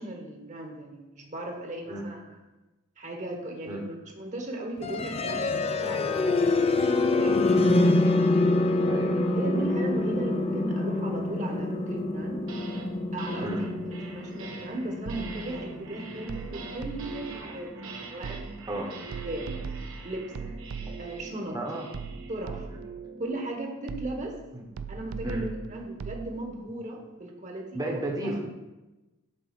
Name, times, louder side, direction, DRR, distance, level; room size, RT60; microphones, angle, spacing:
voice 1, 0.0-2.4 3.0-8.2 9.3-12.4 13.1-18.9 19.2-19.5 20.0-20.2 21.0-21.6 22.3-22.7 23.2-24.4 24.9-28.4, right 1 dB, 35° right, 2 dB, 1.2 m, -37 dB
sound 1, 4.8-16.7, left 2 dB, 30° left, 0.4 m, -26 dB
voice 2, 8.9-9.3 13.4-13.6 18.7-18.9 21.5-21.9 24.5-24.6 25.2-25.5 27.7-28.4, right 1 dB, 20° right, 0 dB, 1.0 m, -32 dB
sound 2, 12.2-12.9 13.2-23.6, right 3 dB, 65° right, 1.1 m, -43 dB
sound 3, 15.1-15.6 16.3-17.3 18.2-18.7 19.1-21.2 21.9-23.0 23.9-24.4 24.8-26.3, right 5 dB, 80° right, 0.4 m, -38 dB
6.8 x 4.1 x 5.9 m, 1.1 s
head